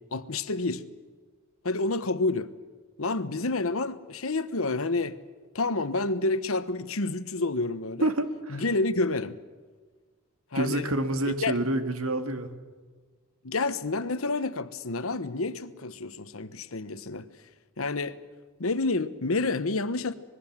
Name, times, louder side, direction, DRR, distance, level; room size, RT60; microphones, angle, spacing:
voice 1, 0.1-0.8 1.6-2.5 3.0-5.2 5.5-8.1 8.5-9.4 10.5-10.9 11.3-11.5 13.4-17.3 17.8-18.2 18.6-20.1, left 3 dB, 70° left, 1.1 m, -29 dB
voice 2, 8.0-8.6 10.5-12.5, right 1 dB, 75° right, 2.1 m, -28 dB
25.5 x 21.0 x 7.4 m
head